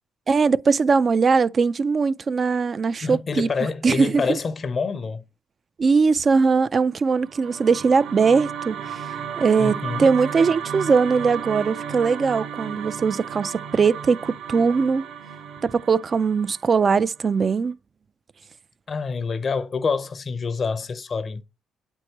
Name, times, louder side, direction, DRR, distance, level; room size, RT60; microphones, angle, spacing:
voice 1, 0.3-3.5 3.8-4.4 5.8-9.0 9.4-15.0 15.6-17.7, right 5 dB, 40° right, 0.3 m, -20 dB
voice 2, 3.0-5.2 9.6-10.1 18.9-21.4, left 5 dB, 45° left, 0.6 m, -27 dB
sound 1, 7.1-17.4, right 8 dB, 80° right, 0.8 m, -34 dB
7.7 x 4.6 x 2.9 m
cardioid pair, 80°, 0 cm